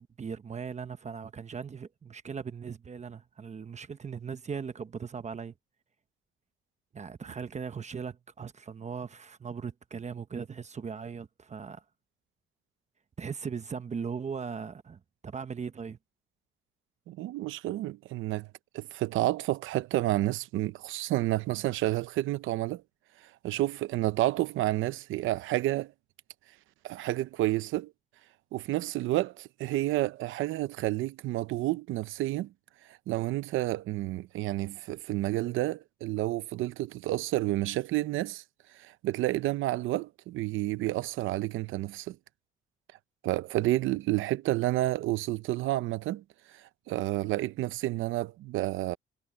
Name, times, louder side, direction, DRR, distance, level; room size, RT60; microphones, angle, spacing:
voice 1, 0.0-5.5 6.9-11.8 13.2-16.0, right 6 dB, 35° right, 1.0 m, -39 dB
voice 2, 17.1-18.5 18.7-22.8 23.2-25.9 26.8-27.9 28.5-32.5 32.9-38.4 38.7-42.2 43.2-49.0, right 16 dB, 90° right, 0.8 m, -30 dB
cardioid pair, 90°, 20 cm